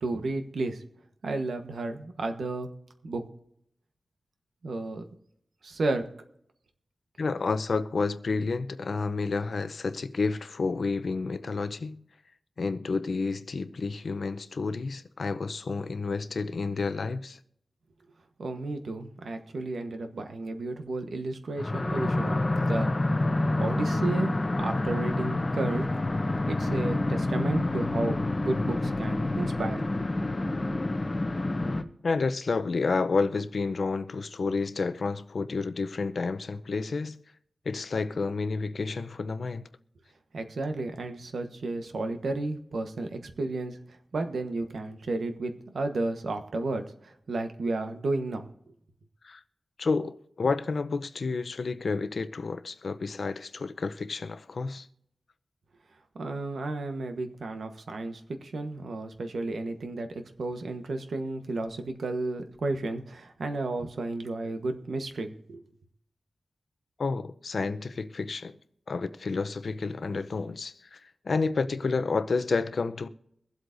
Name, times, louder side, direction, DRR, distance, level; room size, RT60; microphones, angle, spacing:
voice 1, 0.0-0.8 1.2-2.7 3.0-3.2 4.6-5.0 5.6-6.1 18.4-22.9 23.6-25.9 26.5-29.9 40.3-43.8 44.1-48.5 56.1-65.6, right 2 dB, 85° right, 1.2 m, -32 dB
voice 2, 7.2-12.0 12.6-17.4 32.0-37.2 37.7-39.7 49.2-49.4 49.8-54.9 67.0-68.6 68.9-71.0 71.2-73.1, left 4 dB, 65° left, 0.7 m, -30 dB
sound 1, 21.6-31.8, left 2 dB, 30° left, 0.8 m, -28 dB
24.0 x 8.0 x 2.7 m
wide cardioid pair, 110°, 0 cm